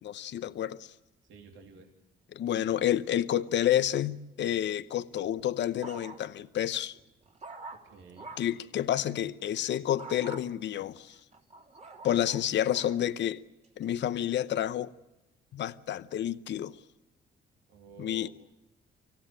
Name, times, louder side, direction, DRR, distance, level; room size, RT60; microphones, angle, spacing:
voice 1, 0.0-0.9 2.3-7.0 8.4-11.2 12.0-13.4 13.8-14.9 15.5-16.8 18.0-18.3, left 11 dB, 65° left, 0.8 m, -29 dB
voice 2, 1.2-1.9 7.8-8.3 17.7-18.3, right 5 dB, 75° right, 2.9 m, -51 dB
sound 1, 5.1-6.5 6.9-8.6 10.0-10.4 11.1-13.0 13.6-14.0, right 3 dB, 35° right, 3.6 m, -47 dB
25.0 x 16.0 x 8.9 m
cardioid pair, 90°, 20 cm